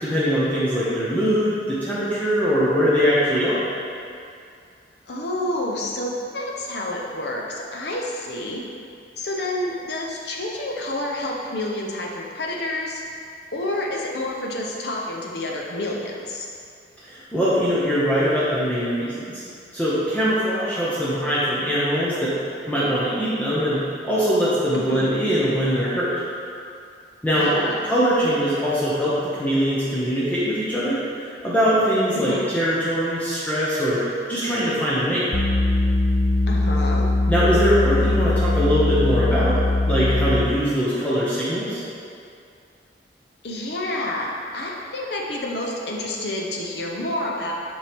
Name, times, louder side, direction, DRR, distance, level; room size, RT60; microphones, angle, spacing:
voice 1, 0.0-3.6 17.0-19.4 19.7-22.3 22.7-26.1 27.2-27.5 27.8-34.0 34.3-35.3 37.3-41.8, equal, 10° left, -10 dB, 0.9 m, -22 dB
voice 2, 5.1-8.6 9.2-13.0 13.5-16.5 24.9-25.1 27.4-27.9 32.1-32.5 36.5-37.0 43.4-47.5, left 1 dB, 60° left, -1 dB, 0.8 m, -29 dB
sound 1, 35.3-40.6, left 2 dB, 40° left, 0.5 m, -21 dB
7.4 x 4.5 x 3.6 m, 2.4 s
head